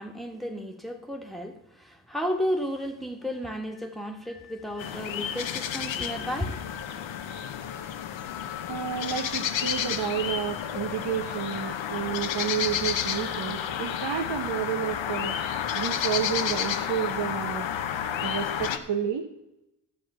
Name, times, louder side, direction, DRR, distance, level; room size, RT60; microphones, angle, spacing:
voice 1, 0.0-6.6, equal, ahead, 1.6 m, -33 dB
sound 1, 3.2-14.8, left 7 dB, 65° left, 1.4 m, -48 dB
sound 2, 4.8-18.8, left 9 dB, 80° left, 0.8 m, -31 dB
voice 2, 8.7-15.4 15.7-17.7 18.2-19.2, right 8 dB, 65° right, 1.2 m, -30 dB
11.0 x 7.7 x 5.7 m
supercardioid pair, 50°, 45 cm